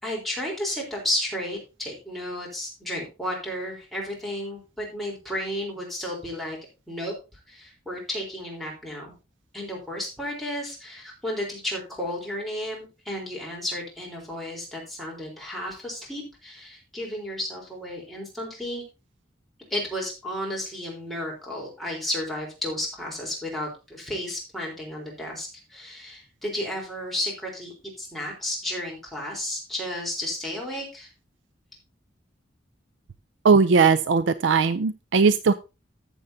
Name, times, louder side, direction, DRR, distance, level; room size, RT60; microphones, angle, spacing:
voice 1, 0.0-6.6 6.9-9.1 9.5-18.8 19.7-31.1, left 1 dB, ahead, -3 dB, 3.7 m, -33 dB
voice 2, 33.4-35.5, right 5 dB, 70° right, 13 dB, 0.5 m, -19 dB
14.5 x 7.2 x 2.7 m, 0.29 s
head